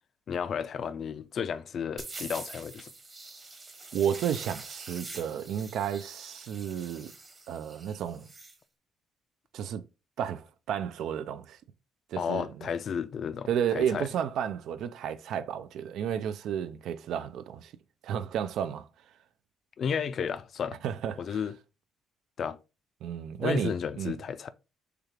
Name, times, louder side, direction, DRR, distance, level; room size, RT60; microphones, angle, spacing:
voice 1, 0.3-2.9 12.2-14.1 19.8-20.8 21.2-21.6 22.4-22.6 23.4-24.5, left 7 dB, 45° left, 0.4 m, -32 dB
sound 1, 2.0-8.6, right 3 dB, 25° right, 1.0 m, -45 dB
voice 2, 3.9-7.1 7.5-8.3 9.5-9.8 10.2-11.6 12.1-12.7 13.5-17.7 18.0-18.9 20.8-21.4 23.0-24.2, right 9 dB, 70° right, 0.5 m, -32 dB
6.6 x 2.4 x 3.3 m
cardioid pair, 145°, 0 cm